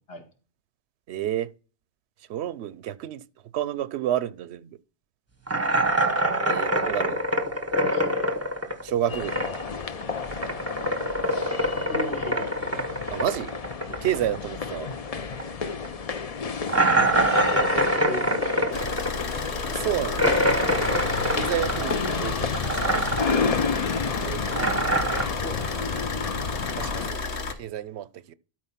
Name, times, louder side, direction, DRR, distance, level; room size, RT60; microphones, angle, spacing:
voice 1, 1.1-1.5 2.3-3.2 3.5-4.8 6.4-7.2 8.8-9.4 13.1-13.5 13.9-14.9 19.6-20.4 20.8-21.1 21.3-23.2 24.2-25.0 26.8-27.2 27.6-28.3, right 11 dB, 80° right, 0.9 m, -30 dB
sound 1, 5.5-9.8 10.0-15.1 15.3-15.4 15.8-15.9 16.7-22.3 22.5-23.5 23.8-25.2, right 1 dB, 15° right, 0.8 m, -25 dB
sound 2, 9.1-27.1, left 5 dB, 40° left, 0.6 m, -31 dB
voice 2, 11.9-12.6 17.4-18.8 21.7-21.8 25.2-25.8, left 1 dB, 65° left, 2.3 m, -37 dB
Car / Idling, 18.7-27.5, left 3 dB, 90° left, 1.4 m, -32 dB
12.5 x 4.4 x 5.7 m
omnidirectional pair, 1.1 m